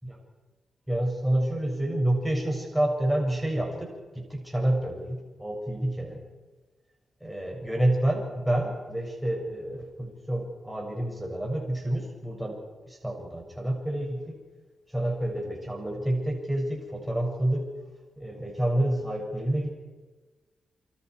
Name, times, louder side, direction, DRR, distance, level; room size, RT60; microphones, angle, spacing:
voice 1, 0.9-6.2 7.2-12.6 12.9-14.4 14.9-17.7 18.2-19.7, right 1 dB, 5° right, 0 dB, 6.9 m, -28 dB
28.5 x 25.5 x 4.9 m, 1.3 s
cardioid pair, 65°, 0 cm